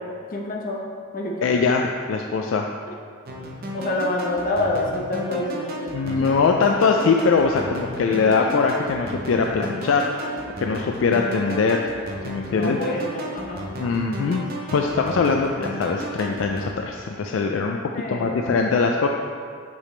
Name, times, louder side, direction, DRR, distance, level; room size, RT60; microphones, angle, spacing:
voice 1, 0.3-0.8 1.1-1.6 2.9-3.0 3.7-5.9 6.2-6.3 12.5-13.6 17.9-18.6, left 1 dB, 45° left, -1 dB, 0.8 m, -27 dB
voice 2, 1.4-2.7 5.9-11.8 12.3-12.8 13.8-14.4 14.7-17.8 18.1-19.1, left 4 dB, 70° left, 2 dB, 0.3 m, -22 dB
sound 1, 3.3-16.7, equal, 45° right, 0.7 m, -34 dB
6.0 x 5.9 x 3.2 m, 2.1 s
head